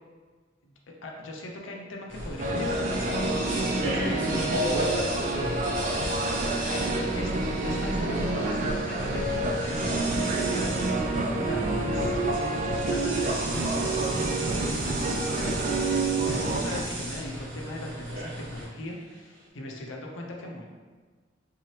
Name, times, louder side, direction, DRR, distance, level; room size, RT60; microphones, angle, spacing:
voice 1, 1.0-3.5 3.7-4.9 5.3-6.2 6.7-20.6, left 1 dB, 70° left, 0 dB, 0.6 m, -39 dB
sound 1, 2.1-18.6, right 1 dB, 90° right, 1.2 m, -37 dB
sound 2, 2.4-16.8, right 2 dB, 40° right, 0.3 m, -28 dB
sound 3, 2.5-19.4, right 2 dB, 75° right, 0.9 m, -38 dB
3.7 x 2.9 x 3.1 m, 1.5 s
head